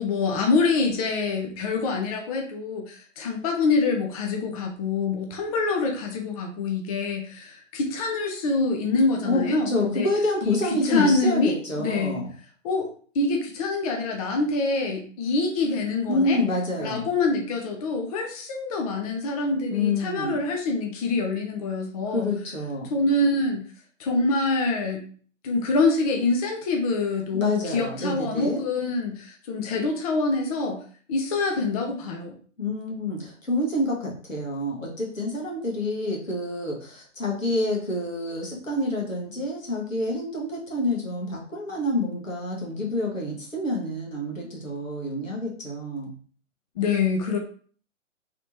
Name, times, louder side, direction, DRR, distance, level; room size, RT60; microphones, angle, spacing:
voice 1, 0.0-10.1 10.4-10.6 10.8-12.2 12.6-12.9 13.1-16.4 16.8-22.3 22.9-23.6 24.0-25.0 25.4-30.8 31.1-32.3 46.8-47.4, left 3 dB, 30° left, 3 dB, 0.5 m, -25 dB
voice 2, 9.2-12.3 16.1-17.1 19.7-20.4 22.1-22.9 27.3-28.6 32.6-46.1, left 1 dB, 90° left, -2 dB, 1.4 m, -28 dB
3.3 x 3.0 x 2.7 m, 0.43 s
figure-of-eight pair, 120°, 38 cm